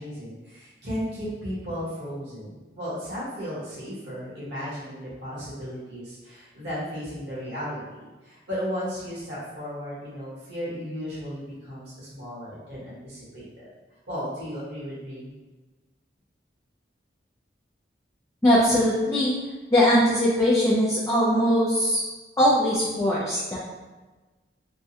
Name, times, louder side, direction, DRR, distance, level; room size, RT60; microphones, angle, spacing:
voice 1, 0.0-7.8 8.2-13.6 14.1-15.3, equal, 70° right, -10 dB, 1.4 m, -35 dB
voice 2, 18.4-19.4 19.7-22.0 22.4-23.6, equal, 15° left, -9 dB, 0.4 m, -21 dB
3.5 x 2.2 x 2.7 m, 1.2 s
head